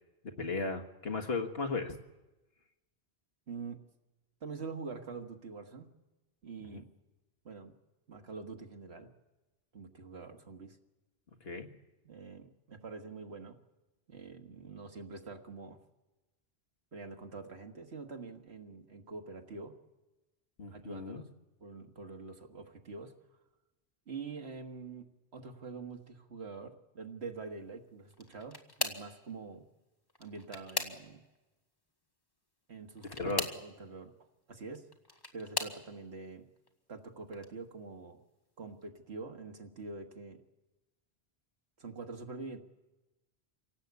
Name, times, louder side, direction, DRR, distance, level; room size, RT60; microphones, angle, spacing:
voice 1, 0.4-2.0 6.7-6.8 11.4-11.7 20.6-21.2 33.0-33.5, left 3 dB, 70° left, 5 dB, 1.8 m, -36 dB
voice 2, 3.5-3.8 4.4-5.9 6.4-6.9 7.4-7.7 8.1-9.1 9.7-10.8 12.0-13.6 14.1-15.8 16.9-19.7 20.7-21.3 21.6-23.1 24.1-29.7 30.2-31.2 32.7-34.1 34.5-34.9 35.3-36.5 36.9-38.2 38.6-40.4 41.8-42.6, right 4 dB, 85° right, 4 dB, 1.9 m, -45 dB
sound 1, 28.1-29.2 30.1-31.4 33.0-33.7 34.7-35.8 36.6-36.9 37.3-37.5 38.8-38.9, left 1 dB, 20° left, 1.7 m, -38 dB
26.5 x 17.5 x 8.3 m, 1.1 s
omnidirectional pair, 1.1 m